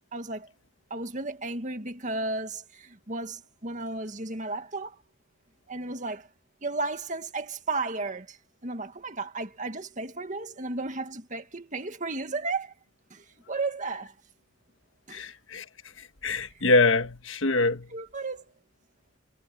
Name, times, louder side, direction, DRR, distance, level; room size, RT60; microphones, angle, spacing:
voice 1, 0.1-0.5 0.9-5.0 5.7-6.3 6.6-12.7 13.1-14.1 15.1-15.3 17.9-18.5, right 3 dB, 40° right, 2.0 m, -34 dB
voice 2, 15.1-15.6 16.0-17.9, left 3 dB, 70° left, 1.5 m, -25 dB
head